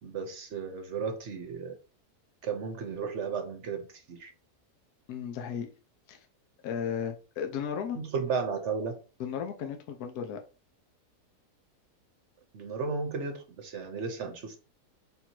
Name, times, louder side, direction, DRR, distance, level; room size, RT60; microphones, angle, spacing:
voice 1, 0.0-1.7 2.4-4.3 7.9-9.0 12.5-14.6, right 5 dB, 60° right, 0.9 m, -34 dB
voice 2, 5.1-5.7 6.1-6.3 6.6-8.0 9.2-10.4, left 7 dB, 75° left, 1.2 m, -35 dB
3.7 x 2.7 x 4.4 m
omnidirectional pair, 1.7 m